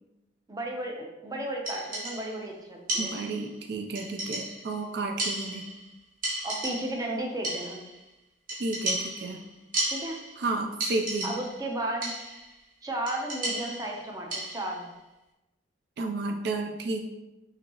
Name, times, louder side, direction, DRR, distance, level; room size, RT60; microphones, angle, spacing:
voice 1, 0.5-3.1 6.4-7.8 9.9-10.2 11.2-12.1 12.8-14.8, right 1 dB, 20° right, 1 dB, 0.6 m, -34 dB
sound 1, 1.6-2.4 2.9-3.6 3.9-4.8 5.2-5.9 6.2-7.1 7.4-8.0 8.5-10.4 10.8-11.7 12.0-12.5 13.1-14.8, right 1 dB, 50° right, 1.3 m, -34 dB
voice 2, 3.0-5.7 8.6-9.4 10.4-11.3 16.0-17.0, right 3 dB, 65° right, 4 dB, 0.4 m, -32 dB
5.7 x 2.7 x 2.9 m, 1.0 s
head